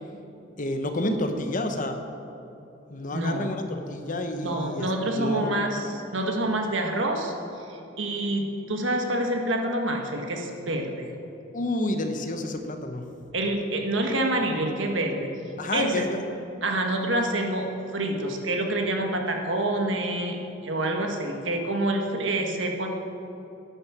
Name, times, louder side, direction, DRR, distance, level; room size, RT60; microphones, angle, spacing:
voice 1, 0.6-2.0 2.9-5.6 11.5-13.1 15.6-16.3, left 1 dB, 45° left, 6 dB, 1.0 m, -29 dB
voice 2, 3.1-3.5 4.4-7.3 7.7-11.1 13.3-15.3 15.7-16.1 16.6-17.7 17.9-20.4 20.6-22.9, right 1 dB, 70° right, 3 dB, 1.6 m, -27 dB
10.5 x 9.9 x 7.3 m, 2.9 s
head